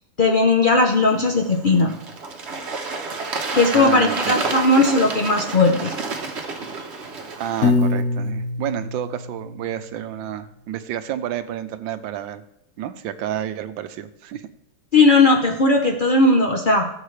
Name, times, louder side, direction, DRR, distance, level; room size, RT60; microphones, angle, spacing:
voice 1, 0.2-1.9 3.5-5.9 14.9-16.9, left 3 dB, 80° left, 2 dB, 0.4 m, -17 dB
Bird / Water, 0.9-7.6, right 4 dB, 40° right, 1.1 m, -30 dB
voice 2, 3.7-4.4 7.4-12.4 12.8-14.5, right 10 dB, 75° right, 11 dB, 1.4 m, -30 dB
Piano, 7.6-9.8, left 3 dB, 55° left, 1.0 m, -23 dB
16.0 x 7.4 x 3.3 m, 0.77 s
omnidirectional pair, 2.2 m